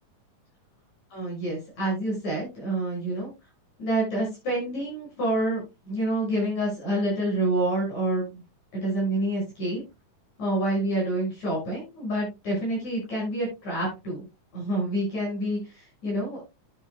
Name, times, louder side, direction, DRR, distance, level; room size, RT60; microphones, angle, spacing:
voice 1, 1.1-3.3 3.8-8.4 8.7-9.8 10.4-14.3 14.5-16.4, right 1 dB, 60° left, -4 dB, 7.6 m, -28 dB
12.5 x 9.2 x 2.2 m, 0.24 s
omnidirectional pair, 3.7 m